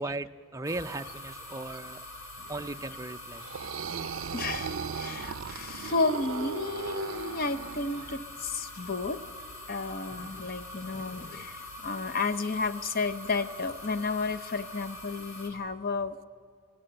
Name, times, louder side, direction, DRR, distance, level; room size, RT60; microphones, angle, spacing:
voice 1, 0.0-2.0 2.5-3.5 10.1-10.3, right 2 dB, 15° right, 8 dB, 0.4 m, -37 dB
sound 1, 0.6-15.5, left 1 dB, 85° left, 3.7 m, -44 dB
sound 2, 3.4-8.2, right 6 dB, 70° right, 0.5 m, -37 dB
voice 2, 3.9-9.2 9.7-16.2, left 4 dB, 45° left, 10 dB, 0.7 m, -32 dB
24.0 x 16.0 x 7.8 m, 2.3 s
head